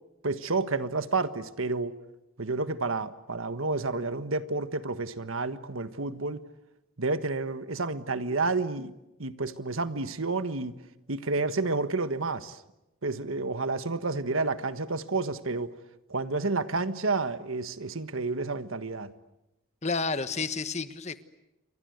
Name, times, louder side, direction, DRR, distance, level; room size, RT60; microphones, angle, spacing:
voice 1, 0.2-2.0 2.4-6.4 7.0-8.9 9.2-10.7 11.1-12.6 13.0-15.7 16.1-19.1, right 3 dB, 80° right, 1.5 m, -30 dB
voice 2, 19.8-21.2, left 4 dB, 35° left, 1.2 m, -30 dB
29.5 x 24.5 x 8.1 m
head